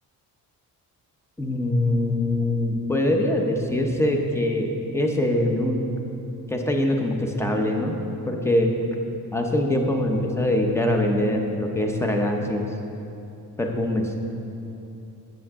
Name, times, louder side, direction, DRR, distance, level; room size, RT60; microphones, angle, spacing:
voice 1, 1.4-5.8 6.5-8.0 8.3-8.7 9.3-12.7 13.6-14.1, left 1 dB, 5° left, 2 dB, 1.0 m, -23 dB
10.0 x 7.8 x 3.7 m, 2.8 s
cardioid pair, 95°, 38 cm